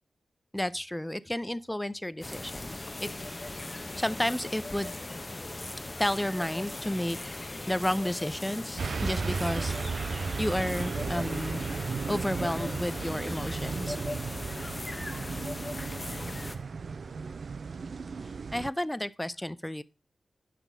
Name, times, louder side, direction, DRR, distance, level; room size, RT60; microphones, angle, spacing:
voice 1, 0.5-3.1 3.4-3.7 4.0-5.2 5.8-7.2 7.7-9.7 10.4-11.6 12.1-14.0 18.5-19.8, left 1 dB, 10° left, 0.5 m, -32 dB
sound 1, 2.2-16.6, left 2 dB, 30° left, 0.8 m, -39 dB
sound 2, 8.8-18.7, right 5 dB, 65° right, 0.3 m, -35 dB
8.0 x 5.9 x 3.9 m
cardioid pair, 50°, 0 cm